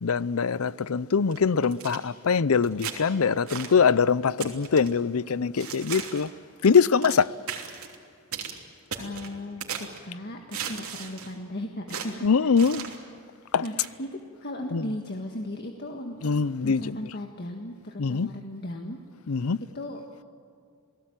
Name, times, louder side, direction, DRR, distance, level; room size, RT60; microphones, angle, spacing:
voice 1, 0.0-6.3 6.6-7.3 12.2-12.8 13.5-13.7 14.7-15.0 16.2-17.1 18.0-18.3 19.3-19.6, left 5 dB, 80° left, 0.6 m, -23 dB
sound 1, 1.3-2.0 2.6-3.0 3.5-3.8 4.4-4.9 5.6-6.3 6.6-7.2 7.5-7.9 8.3-8.6 8.9-10.0 10.5-11.3 11.9-12.1 12.6-13.0 13.6-13.9, right 7 dB, 85° right, 3.1 m, -36 dB
voice 2, 9.0-13.0 13.4-16.3 16.6-19.0 19.7-20.0, left 1 dB, 50° left, 1.7 m, -37 dB
28.5 x 18.5 x 9.0 m
head